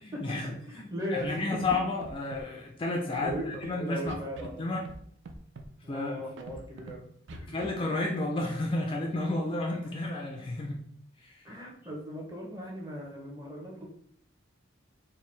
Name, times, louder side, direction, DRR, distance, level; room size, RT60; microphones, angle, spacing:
voice 1, 0.1-0.5 1.1-4.2 4.6-4.8 5.9-6.1 7.4-10.8 11.2-11.5, left 2 dB, 25° left, 0 dB, 0.3 m, -31 dB
voice 2, 0.6-1.6 3.2-4.7 5.8-7.6 11.4-13.9, equal, 20° right, -2 dB, 0.8 m, -38 dB
Scratching (performance technique), 1.2-1.3 1.5-1.7 2.0-2.4 3.1-3.7 4.1-4.5 4.8-5.0 5.2-5.7 6.4-6.9 7.3-7.7, right 3 dB, 60° right, 0.4 m, -43 dB
4.3 x 2.2 x 3.2 m, 0.65 s
head